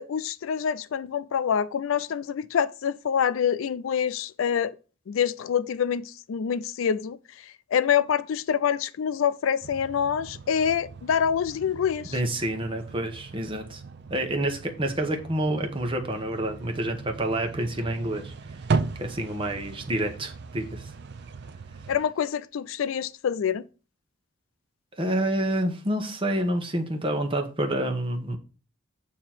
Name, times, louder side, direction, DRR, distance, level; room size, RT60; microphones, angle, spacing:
voice 1, 0.0-4.7 5.1-12.2 21.9-23.7, left 8 dB, 75° left, 0.4 m, -26 dB
sound 1, 9.6-22.0, right 4 dB, 55° right, 0.4 m, -37 dB
voice 2, 12.1-13.8 14.1-18.3 19.0-20.9 25.0-28.4, right 1 dB, 25° right, 0.9 m, -28 dB
6.7 x 2.9 x 5.8 m
head